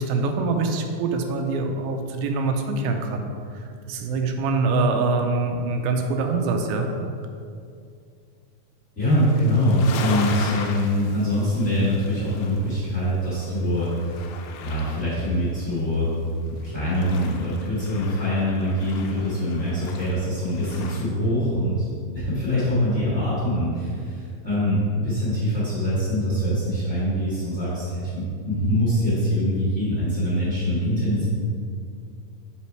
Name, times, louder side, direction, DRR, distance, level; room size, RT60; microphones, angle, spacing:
voice 1, 0.0-3.2 3.9-6.9, right 3 dB, 85° right, 4 dB, 2.4 m, -24 dB
voice 2, 8.9-13.9 14.6-16.1 16.6-21.8 22.1-31.2, equal, 35° left, -10 dB, 1.2 m, -23 dB
sound 1, 9.0-21.1, left 5 dB, 80° left, 2.4 m, -38 dB
7.1 x 4.3 x 4.5 m, 2.3 s
omnidirectional pair, 4.1 m